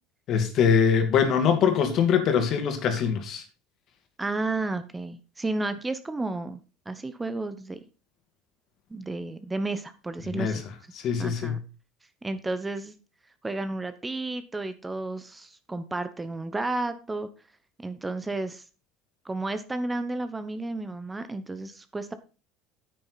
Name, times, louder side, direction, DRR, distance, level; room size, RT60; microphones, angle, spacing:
voice 1, 0.3-3.4 10.3-10.6 10.9-11.6, left 7 dB, 50° left, 2.6 m, -23 dB
voice 2, 4.2-6.6 6.9-7.8 8.9-10.6 11.2-11.6 12.2-13.0 13.4-17.3 17.8-18.6 19.2-22.1, right 2 dB, 15° right, 1.0 m, -32 dB
9.7 x 9.0 x 4.1 m
supercardioid pair, 115°, 0 cm